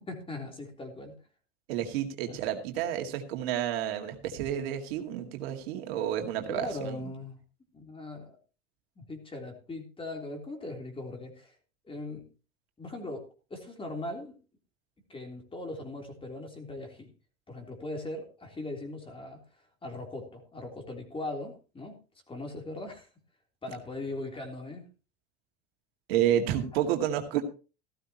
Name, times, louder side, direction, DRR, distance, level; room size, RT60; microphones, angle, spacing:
voice 1, 0.1-1.2 2.3-2.4 6.5-7.4 7.7-8.4 9.0-11.5 11.8-12.3 12.8-14.3 15.1-17.1 17.5-19.4 19.8-22.0 22.3-23.1 23.6-24.9, left 2 dB, 20° left, 3 dB, 3.5 m, -39 dB
voice 2, 1.7-6.9 26.1-27.4, right 10 dB, 80° right, 4 dB, 2.3 m, -30 dB
15.0 x 13.0 x 3.0 m, 0.33 s
supercardioid pair, 115°, 30 cm